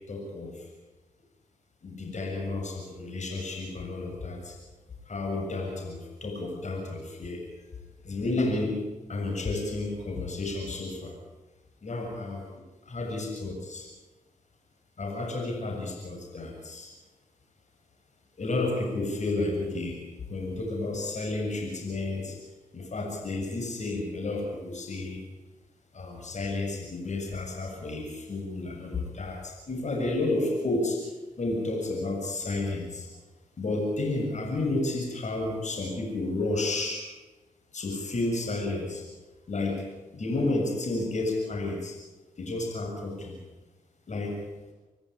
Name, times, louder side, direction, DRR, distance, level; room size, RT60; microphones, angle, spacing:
voice 1, 0.1-0.6 1.8-4.6 5.1-7.4 8.0-8.8 9.1-11.2 11.8-12.5 12.9-13.9 15.0-16.9 18.4-20.0 20.3-22.4 22.7-25.2 25.9-31.0 31.4-33.1 33.6-37.0 37.7-39.0 39.5-39.8 40.1-41.9 42.4-43.4 44.1-44.4, left 2 dB, 50° left, 1 dB, 7.3 m, -31 dB
26.5 x 14.0 x 10.0 m, 1.2 s
supercardioid pair, 50°, 15 cm